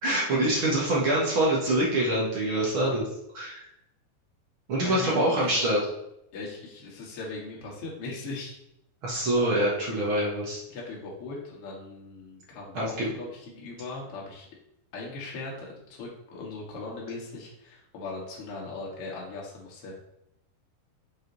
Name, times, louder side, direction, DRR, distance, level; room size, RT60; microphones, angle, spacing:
voice 1, 0.0-3.0 3.3-3.6 4.7-5.8 9.0-10.6 12.7-13.1, right 1 dB, 65° right, -5 dB, 1.2 m, -25 dB
voice 2, 4.8-5.7 6.3-8.6 10.7-14.5 14.9-19.9, left 3 dB, 45° left, -4 dB, 1.9 m, -39 dB
6.7 x 5.2 x 4.0 m, 0.81 s
omnidirectional pair, 4.7 m